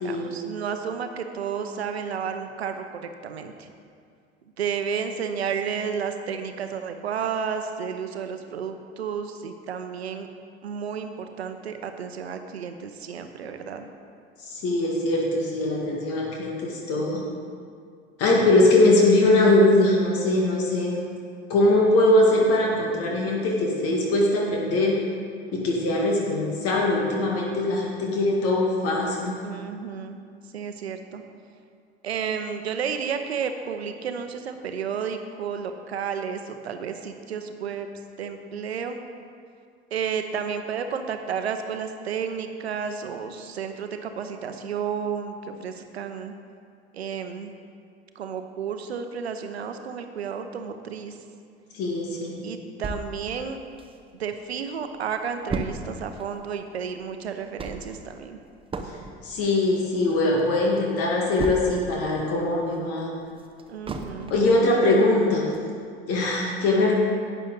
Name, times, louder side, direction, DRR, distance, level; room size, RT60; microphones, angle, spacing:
voice 1, 0.0-3.7 4.6-10.3 10.6-13.9 29.4-30.2 30.5-31.2 32.0-37.9 38.2-39.0 39.9-46.3 46.9-47.5 48.1-51.2 52.4-53.6 54.1-58.4 63.7-64.3, right 7 dB, 75° right, 7 dB, 0.8 m, -32 dB
voice 2, 14.5-17.2 18.2-21.0 21.5-25.0 25.5-29.4 51.7-52.4 59.2-63.1 64.3-65.5 66.1-66.9, left 2 dB, 45° left, -2 dB, 1.9 m, -21 dB
sound 1, 52.8-54.4 54.8-54.9 55.0-62.0 62.4-64.6 65.0-65.1 65.5-65.6, right 3 dB, 15° right, 0.8 m, -35 dB
11.5 x 8.8 x 3.9 m, 2.3 s
figure-of-eight pair, 70°, 32 cm